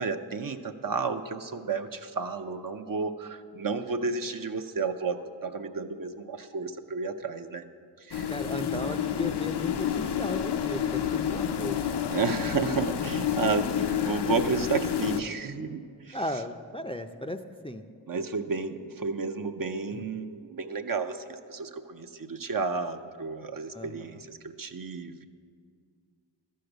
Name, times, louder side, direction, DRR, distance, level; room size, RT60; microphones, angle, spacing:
voice 1, 0.0-7.6 8.0-8.3 12.1-16.2 18.1-25.3, right 4 dB, 50° right, 7 dB, 0.7 m, -32 dB
sound 1, 8.1-15.2, left 9 dB, 65° left, 0.6 m, -29 dB
voice 2, 8.3-11.8 16.1-17.8 19.9-20.1 23.7-24.2, left 1 dB, 15° left, 5 dB, 0.5 m, -36 dB
12.5 x 6.6 x 7.9 m, 2.2 s
wide cardioid pair, 60°, 43 cm